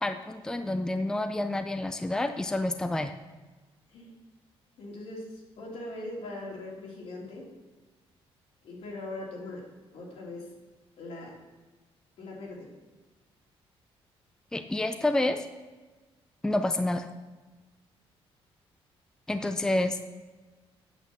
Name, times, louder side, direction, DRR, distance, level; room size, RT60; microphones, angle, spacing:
voice 1, 0.0-3.1 14.5-15.5 16.4-17.1 19.3-20.1, left 1 dB, 5° left, 8 dB, 0.5 m, -28 dB
voice 2, 4.8-7.5 8.6-10.5 11.0-11.4 12.2-12.7, left 2 dB, 75° left, -3 dB, 3.0 m, -41 dB
8.3 x 6.3 x 7.1 m, 1.3 s
cardioid pair, 120°, 10 cm